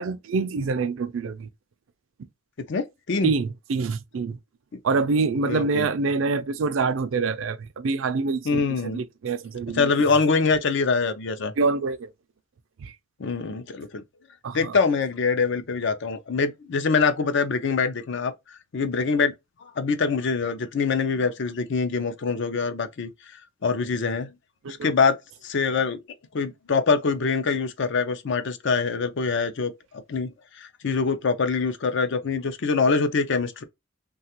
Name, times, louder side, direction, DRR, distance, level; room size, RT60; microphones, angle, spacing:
voice 1, 0.0-1.5 3.2-4.4 4.8-9.9 11.6-12.1 12.8-12.9 14.4-14.8 24.6-24.9, right 4 dB, 75° right, 0.4 m, -26 dB
voice 2, 2.7-3.3 5.5-5.9 8.4-9.0 9.7-11.5 13.2-14.0 14.5-19.3 19.8-23.4 23.6-24.3 24.7-25.2 25.4-26.0 26.3-29.7 30.1-33.6, left 4 dB, 65° left, 0.5 m, -24 dB
3.2 x 2.3 x 2.8 m
head